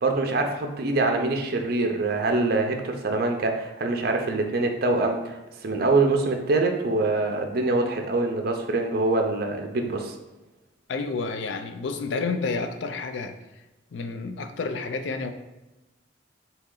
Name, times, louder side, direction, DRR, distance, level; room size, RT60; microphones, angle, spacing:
voice 1, 0.0-10.1, right 3 dB, 50° right, 0.5 m, -24 dB
voice 2, 10.9-13.4 13.9-15.3, left 4 dB, 70° left, 0.4 m, -30 dB
4.1 x 2.8 x 3.7 m
head